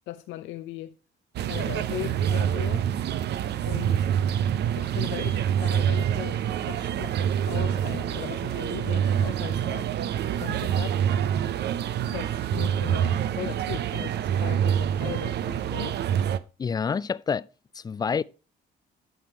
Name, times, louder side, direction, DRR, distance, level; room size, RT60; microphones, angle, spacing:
voice 1, 0.1-0.9 1.5-2.9 3.7-4.1 4.8-9.9 10.4-11.1 12.1-16.0, left 14 dB, 90° left, 0.6 m, -38 dB
sound 1, 1.3-16.4, right 9 dB, 65° right, 0.6 m, -26 dB
voice 2, 16.6-17.5 17.7-18.2, left 6 dB, 20° left, 0.3 m, -27 dB
9.4 x 5.9 x 4.6 m
cardioid pair, 95°, 19 cm